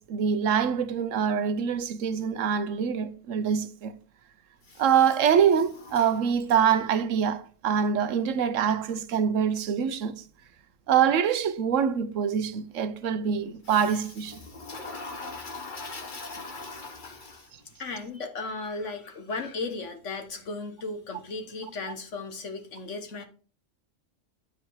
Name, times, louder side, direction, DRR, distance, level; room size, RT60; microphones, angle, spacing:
voice 1, 0.0-3.9 4.8-10.2 10.9-14.4, right 7 dB, 85° right, 1.1 m, -25 dB
Toilet flush, 4.6-6.9 13.6-17.8, left 3 dB, 40° left, 1.4 m, -42 dB
voice 2, 17.8-23.2, left 3 dB, 75° left, 1.6 m, -35 dB
9.2 x 5.1 x 4.6 m
omnidirectional pair, 1.3 m